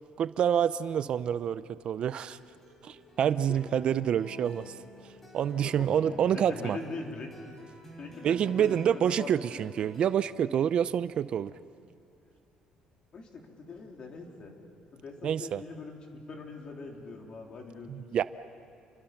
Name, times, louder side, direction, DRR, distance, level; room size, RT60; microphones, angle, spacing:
voice 1, 0.2-2.4 2.8-4.7 5.3-6.8 8.2-11.5 15.2-15.6 17.9-18.2, right 9 dB, 45° right, 14 dB, 0.5 m, -27 dB
sound 1, 2.1-10.2, left 1 dB, 15° left, 4.9 m, -49 dB
voice 2, 5.6-7.3 8.0-9.7 13.1-14.6 14.9-16.0 16.3-18.2, left 3 dB, 40° left, 1 dB, 3.4 m, -42 dB
29.5 x 24.0 x 5.9 m, 2.7 s
cardioid pair, 145°, 2 cm